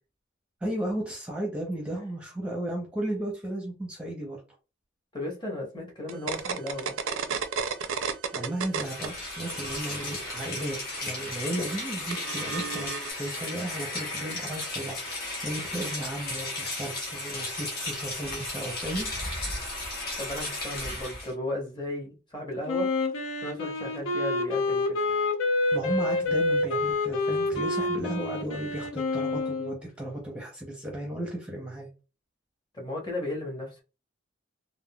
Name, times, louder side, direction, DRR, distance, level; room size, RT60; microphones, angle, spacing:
voice 1, 0.6-4.4 8.3-19.1 25.7-31.9, right 1 dB, 5° right, 0.6 m, -34 dB
voice 2, 5.1-6.9 20.2-22.9 23.4-25.0 32.7-33.8, left 1 dB, 20° left, 0.9 m, -35 dB
sound 1, 6.1-9.1 9.4-13.1, right 6 dB, 75° right, 0.4 m, -33 dB
Rain, 8.7-21.3, left 2 dB, 50° left, 1.1 m, -35 dB
Wind instrument woodwind instrument, 22.7-29.8, left 2 dB, 80° left, 0.7 m, -28 dB
3.6 x 2.0 x 2.2 m
head